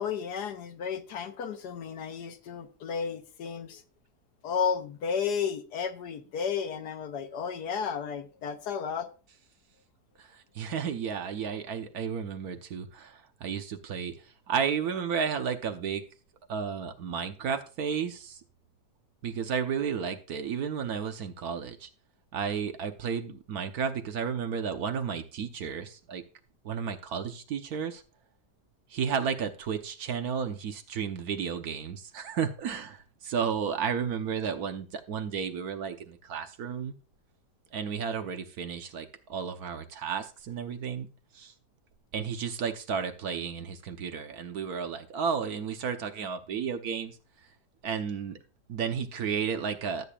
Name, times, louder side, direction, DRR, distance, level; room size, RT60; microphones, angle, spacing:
voice 1, 0.0-3.8 4.4-9.1, left 6 dB, 75° left, 1.4 m, -33 dB
voice 2, 10.2-16.0 16.5-18.4 19.2-21.9 22.3-26.2 26.6-28.0 28.9-37.0 37.7-41.1 41.3-41.5 42.1-47.2 47.8-48.4 48.7-50.0, right 7 dB, 65° right, 1.3 m, -33 dB
13.5 x 8.4 x 2.4 m
omnidirectional pair, 1.8 m